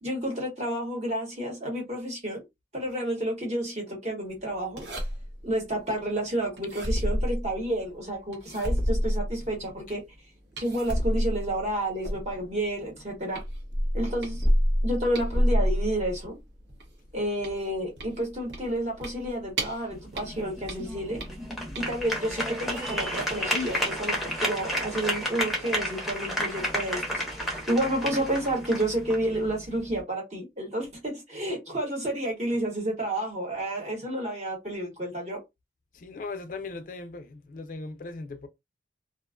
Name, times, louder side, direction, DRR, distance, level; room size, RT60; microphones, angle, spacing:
voice 1, 0.0-2.4 2.7-5.1 5.4-10.0 10.6-13.4 13.9-14.5 14.8-16.4 17.1-21.2 21.7-35.4, right 1 dB, 40° right, 1.0 m, -30 dB
sound 1, 4.8-5.4 6.6-7.8 8.3-9.7 10.6-12.5 13.0-13.1 13.3-16.3 16.7-19.8 20.1-22.1 22.7-23.3 23.7-23.9, equal, 80° right, 0.9 m, -28 dB
sound 2, 19.9-30.0, equal, ahead, 0.6 m, -32 dB
voice 2, 35.9-38.5, left 3 dB, 45° left, 0.4 m, -38 dB
2.4 x 2.2 x 2.3 m
head